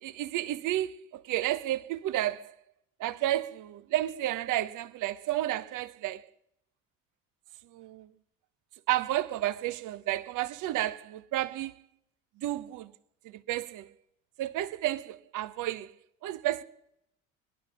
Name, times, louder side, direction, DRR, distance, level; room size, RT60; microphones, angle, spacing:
voice 1, 0.0-2.5 3.0-6.3 7.7-8.1 8.9-11.8 12.4-12.9 13.2-13.9 14.4-15.9 16.2-16.6, right 14 dB, 55° right, 0.9 m, -31 dB
21.0 x 11.5 x 5.5 m
hypercardioid pair, 55°, 37 cm